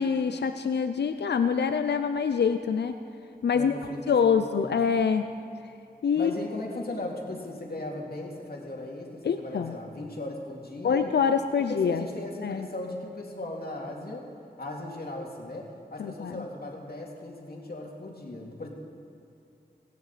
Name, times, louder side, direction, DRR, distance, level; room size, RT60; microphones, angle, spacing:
voice 1, 0.0-2.9 3.4-3.7 4.1-5.3 6.0-6.3 9.2-9.8 10.8-12.1 12.4-12.7 16.0-16.4, left 6 dB, 90° left, 8 dB, 0.5 m, -25 dB
voice 2, 3.5-4.8 6.2-11.1 11.7-14.3 14.6-18.7, left 2 dB, 65° left, -1 dB, 2.5 m, -37 dB
18.5 x 16.0 x 4.2 m, 2.7 s
cardioid pair, 40°, 17 cm